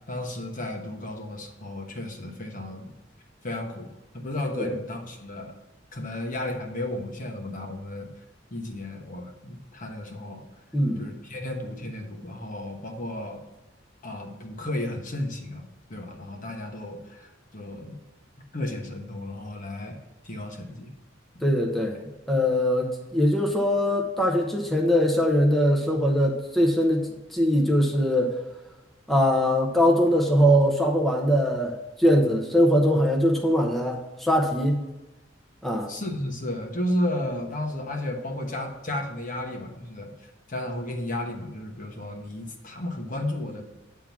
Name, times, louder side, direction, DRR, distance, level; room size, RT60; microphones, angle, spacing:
voice 1, 0.1-2.9 3.4-5.5 5.9-8.1 8.5-10.4 11.0-13.4 14.0-18.0 18.5-20.0 20.2-20.9 35.9-40.1 40.5-43.6, left 1 dB, 45° left, 2 dB, 1.1 m, -33 dB
voice 2, 21.4-28.3 29.1-31.7 32.0-34.8 35.6-35.9, equal, ahead, -1 dB, 0.8 m, -22 dB
8.9 x 3.7 x 5.9 m, 1.0 s
head